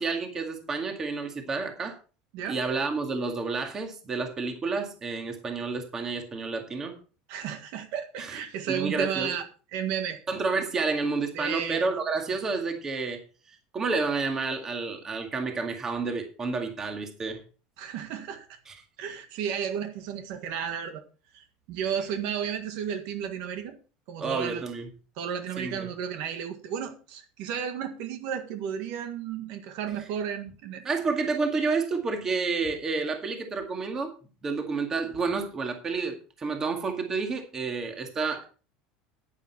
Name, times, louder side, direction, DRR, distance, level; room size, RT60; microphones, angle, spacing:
voice 1, 0.0-2.0 2.5-7.0 8.2-8.4 8.7-9.4 10.3-13.2 13.5-17.4 18.7-18.8 24.2-24.9 25.6-25.9 30.8-34.1 34.4-38.5, right 4 dB, 20° right, 5 dB, 2.0 m, -30 dB
voice 2, 7.3-9.4 9.7-10.2 11.3-11.8 17.8-18.6 19.0-21.0 21.3-23.8 24.1-24.6 25.2-30.8, right 8 dB, 55° right, 7 dB, 1.7 m, -33 dB
10.5 x 10.0 x 4.4 m, 0.35 s
cardioid pair, 170°, 3 cm